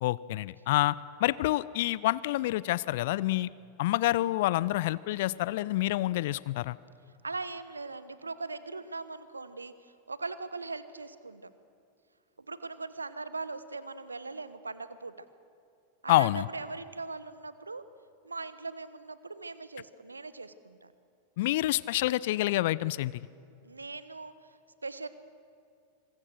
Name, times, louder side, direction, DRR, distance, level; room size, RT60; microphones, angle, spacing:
voice 1, 0.0-3.5 3.8-6.8 16.1-16.5 21.4-23.3, left 16 dB, 50° left, 20 dB, 0.5 m, -27 dB
voice 2, 7.2-11.5 12.4-15.2 16.0-17.8 18.2-20.9 23.6-25.1, right 3 dB, 80° right, 14 dB, 1.1 m, -40 dB
25.5 x 23.0 x 6.4 m, 2.4 s
figure-of-eight pair, 90°, 0 cm